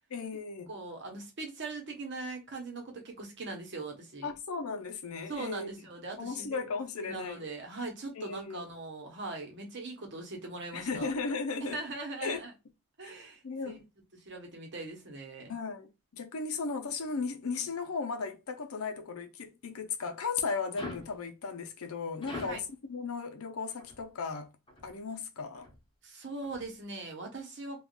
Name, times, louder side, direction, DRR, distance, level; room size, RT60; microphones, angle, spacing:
voice 1, 0.1-0.7 4.2-5.7 6.2-7.5 8.2-8.6 10.7-11.8 12.2-12.4 13.0-13.1 13.4-13.8 15.5-24.5 24.8-25.7, left 4 dB, 75° left, 0.6 m, -36 dB
voice 2, 0.7-4.3 5.3-6.6 7.0-11.1 11.6-12.5 13.0-13.8 14.1-15.5 22.3-22.6 26.0-27.8, right 3 dB, 55° right, 1.1 m, -41 dB
sound 1, 20.8-21.2 22.2-22.7 23.8-24.0 24.7-24.9 25.5-25.8 26.4-26.7, left 3 dB, 25° left, 0.9 m, -42 dB
3.5 x 2.4 x 2.4 m
head